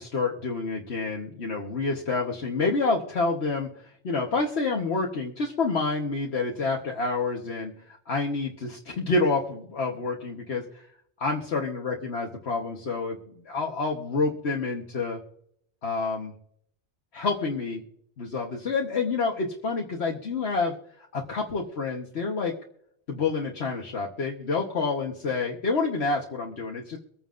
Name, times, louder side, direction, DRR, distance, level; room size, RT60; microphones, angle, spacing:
voice 1, 0.0-3.7 4.0-10.6 11.2-13.2 13.4-15.2 15.8-16.3 17.1-17.8 18.2-20.7 21.1-22.5 23.1-27.0, left 3 dB, 70° left, 0 dB, 1.5 m, -28 dB
24.0 x 9.2 x 2.5 m, 0.68 s
omnidirectional pair, 1.2 m